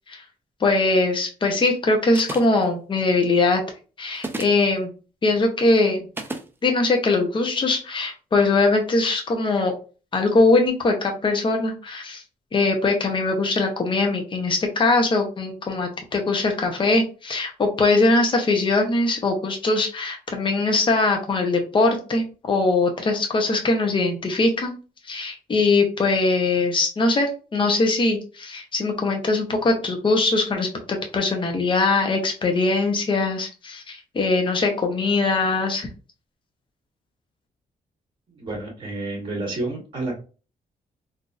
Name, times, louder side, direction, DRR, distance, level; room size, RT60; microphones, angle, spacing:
voice 1, 0.6-3.6 4.0-4.9 5.2-6.1 6.6-9.7 10.1-12.2 12.5-24.7 25.0-35.9, left 3 dB, 35° left, 2 dB, 0.8 m, -21 dB
sound 1, 2.1-2.6 4.2-4.6 6.2-6.5, right 2 dB, 15° right, 0.5 m, -32 dB
voice 2, 38.3-40.1, right 2 dB, 35° right, -1 dB, 1.8 m, -30 dB
3.9 x 2.7 x 2.5 m, 0.35 s
cardioid pair, 130°, 15 cm